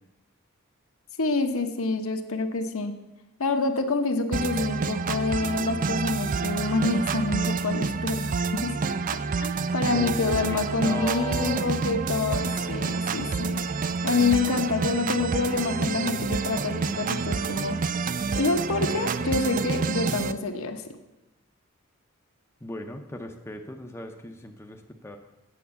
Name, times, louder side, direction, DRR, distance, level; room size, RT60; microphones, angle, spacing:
voice 1, 1.2-2.9 3.4-8.7 9.4-13.6 14.0-17.8 18.3-20.8, left 3 dB, 70° left, 6 dB, 1.0 m, -27 dB
sound 1, 4.3-20.3, right 4 dB, 35° right, 0.4 m, -28 dB
voice 2, 9.9-11.7 22.6-25.2, left 1 dB, 10° left, 4 dB, 0.6 m, -37 dB
8.5 x 7.7 x 6.9 m, 1.0 s
head